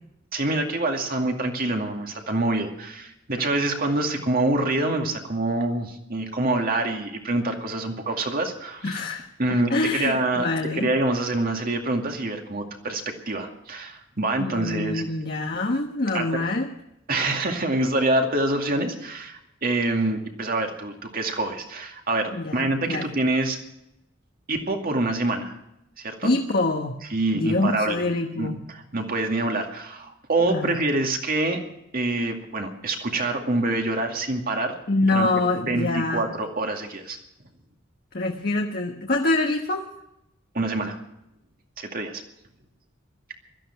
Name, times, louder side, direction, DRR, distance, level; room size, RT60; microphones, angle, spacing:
voice 1, 0.3-8.9 9.4-10.5 10.7-15.0 16.1-16.3 17.1-23.6 24.5-25.6 26.0-26.3 27.1-28.5 28.9-31.6 31.9-34.8 35.1-35.3 35.7-37.2 40.5-41.0 41.8-42.2, right 2 dB, 50° right, 3 dB, 2.3 m, -26 dB
voice 2, 8.8-9.3 9.7-10.9 14.4-16.7 22.3-23.1 26.2-27.0 27.3-28.6 30.5-30.8 34.9-36.2 38.1-39.9, left 2 dB, 50° left, 2 dB, 1.2 m, -25 dB
17.0 x 13.5 x 5.9 m, 0.85 s
head